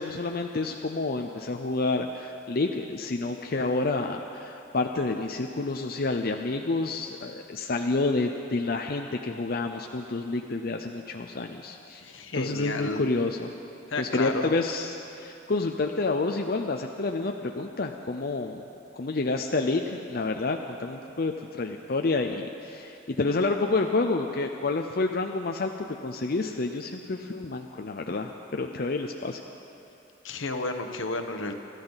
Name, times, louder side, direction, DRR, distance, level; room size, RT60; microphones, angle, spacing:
voice 1, 0.0-12.0 12.3-13.5 14.0-18.6 18.9-29.4, left 3 dB, 50° left, 3 dB, 0.6 m, -29 dB
voice 2, 12.0-13.1 13.9-14.5 30.2-31.5, left 2 dB, 75° left, 6 dB, 1.1 m, -32 dB
25.5 x 13.0 x 4.0 m, 2.7 s
head